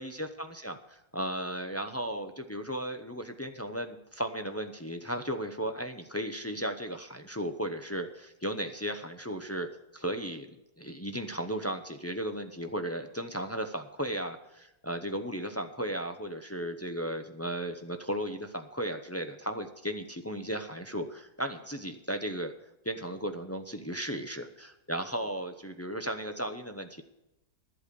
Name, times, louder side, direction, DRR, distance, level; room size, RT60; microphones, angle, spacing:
voice 1, 0.0-9.7 9.9-10.5 10.8-22.5 22.8-27.0, right 1 dB, 20° left, 6 dB, 0.4 m, -35 dB
12.0 x 8.3 x 6.8 m, 0.90 s
omnidirectional pair, 1.7 m